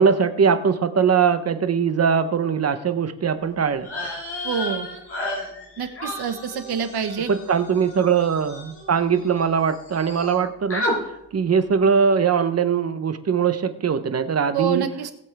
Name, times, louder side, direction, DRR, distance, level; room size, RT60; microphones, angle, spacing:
voice 1, 0.0-3.9 7.3-11.0 11.3-14.8, right 6 dB, 40° right, 11 dB, 0.8 m, -21 dB
sound 1, 3.8-9.4 9.7-10.4 10.7-11.0, left 1 dB, 35° left, 5.3 m, -32 dB
voice 2, 4.4-4.9 5.8-7.3 14.5-15.1, right 7 dB, 70° right, 7 dB, 1.4 m, -26 dB
19.0 x 8.1 x 3.4 m, 0.81 s
cardioid pair, 130°, 40 cm